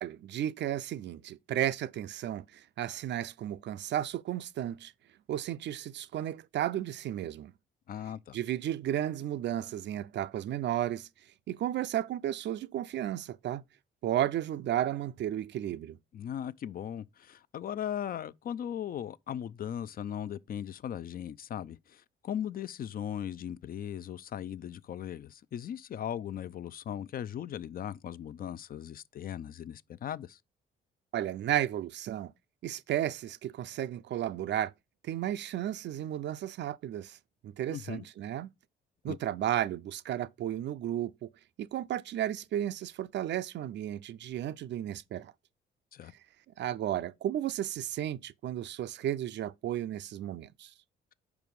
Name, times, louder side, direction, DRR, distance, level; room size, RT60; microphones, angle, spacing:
voice 1, 0.0-4.9 5.3-7.5 8.3-11.1 11.5-13.6 14.0-16.0 31.1-32.3 32.6-34.7 35.0-37.2 37.4-38.5 39.0-41.3 41.6-45.3 46.6-50.7, right 11 dB, 65° right, 0.5 m, -33 dB
voice 2, 7.9-8.4 16.1-30.4 37.7-38.0 39.1-39.2 45.9-46.1, left 9 dB, 50° left, 0.4 m, -38 dB
4.9 x 4.7 x 5.3 m
cardioid pair, 90°, 20 cm